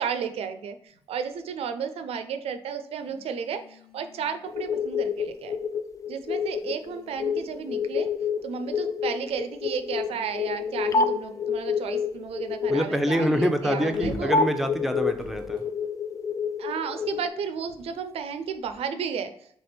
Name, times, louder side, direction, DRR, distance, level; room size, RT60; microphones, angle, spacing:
voice 1, 0.0-5.6 6.1-8.1 8.4-14.3 16.6-19.3, right 7 dB, 75° right, 9 dB, 0.5 m, -33 dB
sound 1, 0.9-1.1 2.9-4.7 5.6-5.7 6.4-8.1 8.7-9.2 9.9-15.9 16.7-18.9, left 2 dB, 55° left, 1.2 m, -47 dB
sound 2, 4.5-17.3, left 5 dB, 30° left, 0.3 m, -29 dB
voice 2, 12.7-15.6, equal, ahead, 6 dB, 0.6 m, -25 dB
3.4 x 3.3 x 4.3 m, 0.66 s
cardioid pair, 75°, 10 cm